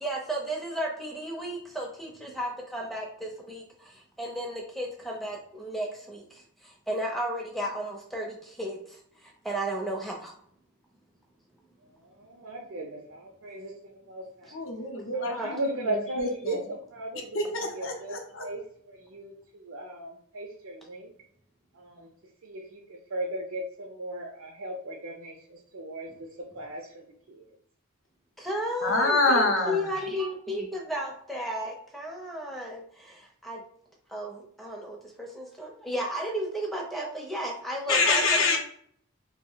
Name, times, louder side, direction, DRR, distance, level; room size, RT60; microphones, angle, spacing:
voice 1, 0.0-10.3 15.2-15.5 28.4-33.6 34.1-38.6, equal, ahead, -1 dB, 0.5 m, -34 dB
voice 2, 11.8-14.6 15.1-21.1 21.7-22.1 22.4-27.6, right 1 dB, 60° right, 0 dB, 0.4 m, -37 dB
voice 3, 14.5-15.6 16.2-16.6 17.3-17.9 18.3-18.4 28.8-30.0 37.9-38.6, left 3 dB, 60° left, 3 dB, 0.6 m, -25 dB
2.5 x 2.0 x 3.8 m, 0.62 s
head